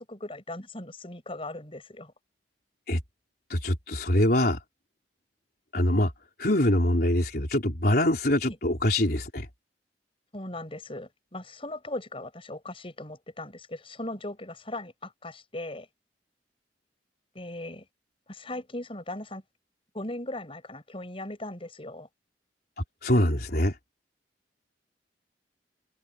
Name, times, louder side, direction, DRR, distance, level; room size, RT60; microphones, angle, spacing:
voice 1, 0.0-2.1 8.5-8.6 10.3-15.9 17.3-17.8 18.3-19.4 19.9-22.1, left 1 dB, 30° left, 6.3 m, -38 dB
voice 2, 3.5-4.6 5.7-6.1 6.4-9.5 23.0-23.7, left 1 dB, 55° left, 4.2 m, -24 dB
head